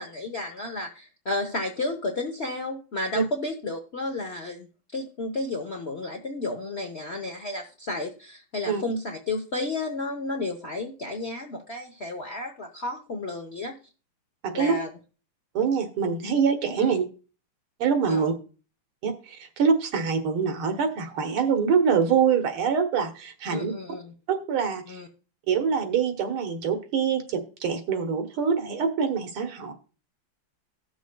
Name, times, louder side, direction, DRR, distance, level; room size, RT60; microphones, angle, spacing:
voice 1, 0.0-13.7 14.5-14.9 16.8-16.9 18.1-18.3 23.5-24.1 24.9-25.1, left 2 dB, 55° left, 1 dB, 0.7 m, -32 dB
voice 2, 14.4-14.8 15.6-17.0 17.8-18.3 19.0-23.7 24.3-25.0 25.5-29.7, right 6 dB, 80° right, 5 dB, 2.0 m, -25 dB
18.5 x 6.2 x 2.2 m, 0.35 s
omnidirectional pair, 2.4 m